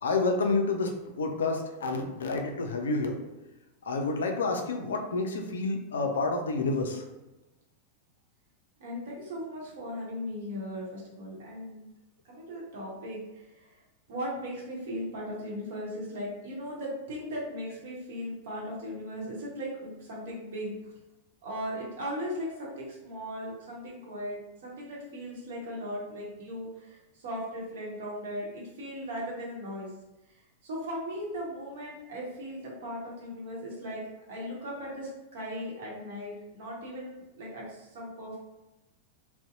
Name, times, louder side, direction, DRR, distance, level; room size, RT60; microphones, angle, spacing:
voice 1, 0.0-3.2 3.8-7.0, left 3 dB, 65° left, 3 dB, 0.3 m, -29 dB
voice 2, 8.8-11.9 12.2-13.7 14.1-20.8 21.4-29.9 30.6-34.0 34.3-38.4, equal, 55° right, -4 dB, 0.8 m, -38 dB
2.6 x 2.0 x 2.5 m, 1.0 s
figure-of-eight pair, 90°, 0 cm